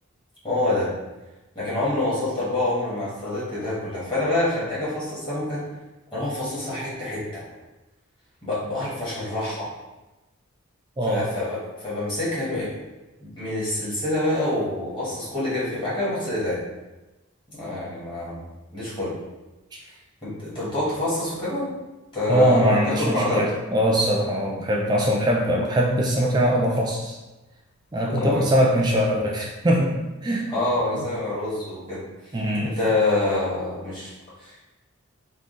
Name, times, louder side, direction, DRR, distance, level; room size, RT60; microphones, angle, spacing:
voice 1, 0.4-0.9 1.5-5.6 6.1-7.4 8.4-9.7 11.0-12.8 13.2-16.6 17.5-18.4 18.7-19.1 20.2-21.7 22.1-23.5 28.1-28.4 30.5-32.3 32.8-34.1 34.4-34.7, left 2 dB, 25° left, -9 dB, 1.3 m, -26 dB
voice 2, 22.3-27.2 27.9-29.9 30.2-30.5 32.3-32.8, equal, 20° right, -1 dB, 0.3 m, -21 dB
sound 1, 25.4-26.7 28.1-29.1 29.6-29.7 30.7-31.3, left 3 dB, 80° left, 0.4 m, -39 dB
3.7 x 2.3 x 3.7 m, 1.1 s
head